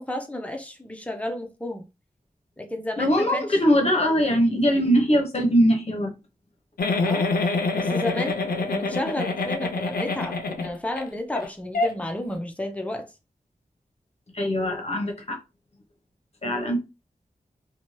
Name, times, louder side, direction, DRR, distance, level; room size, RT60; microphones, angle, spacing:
voice 1, 0.0-1.8 2.6-3.6 7.0-7.3 7.7-13.1, left 1 dB, 10° left, 0.5 m, -32 dB
voice 2, 3.0-6.1 14.3-15.4 16.4-16.8, equal, 45° left, 0.8 m, -21 dB
Giggle, 6.8-11.0 11.4-11.5 11.7-11.9, left 3 dB, 85° left, 0.4 m, -26 dB
2.7 x 2.2 x 3.0 m
wide cardioid pair, 80°, 15 cm